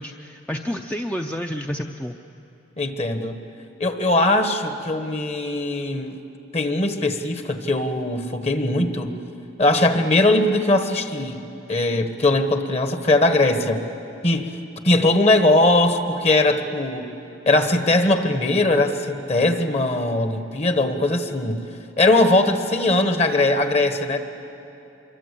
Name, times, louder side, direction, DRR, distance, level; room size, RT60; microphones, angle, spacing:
voice 1, 0.0-2.1, equal, 5° left, 4 dB, 0.5 m, -29 dB
voice 2, 2.8-3.4 3.8-6.2 6.5-9.1 9.6-11.4 11.7-13.8 14.2-14.6 14.8-17.1 17.4-21.6 22.0-24.2, left 2 dB, 35° left, 8 dB, 1.4 m, -20 dB
25.0 x 23.0 x 8.3 m, 2.9 s
head